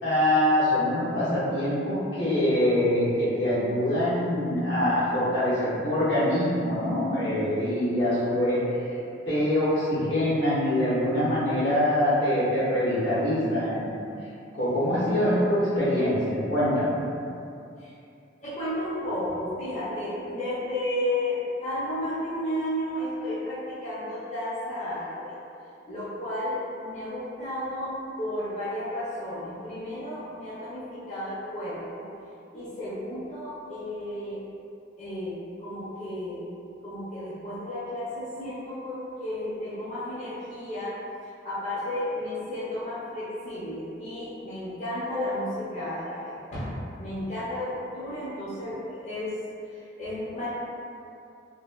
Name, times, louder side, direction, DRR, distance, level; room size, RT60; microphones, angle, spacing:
voice 1, 0.0-8.6 8.8-9.0 9.3-14.1 14.5-16.9, left 1 dB, 80° left, -11 dB, 1.2 m, -24 dB
voice 2, 18.4-25.3 25.9-32.1 32.5-34.4 35.0-36.4 36.8-41.0 41.4-49.3 49.6-50.5, left 1 dB, 40° left, -11 dB, 0.5 m, -33 dB
3.2 x 2.1 x 2.3 m, 2.6 s
head